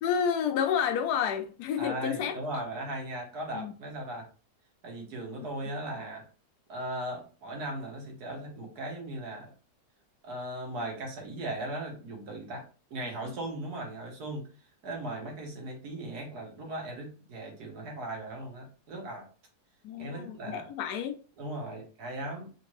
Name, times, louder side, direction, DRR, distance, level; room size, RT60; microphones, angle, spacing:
voice 1, 0.0-2.4 3.5-3.7 5.4-5.5 13.3-13.4 19.8-21.2, left 8 dB, 80° left, 1.1 m, -30 dB
voice 2, 1.8-4.3 4.8-6.3 6.7-9.5 10.2-14.5 14.8-19.3 20.0-20.7 21.4-22.5, right 1 dB, 70° right, 1.6 m, -38 dB
3.6 x 2.9 x 3.0 m
omnidirectional pair, 1.7 m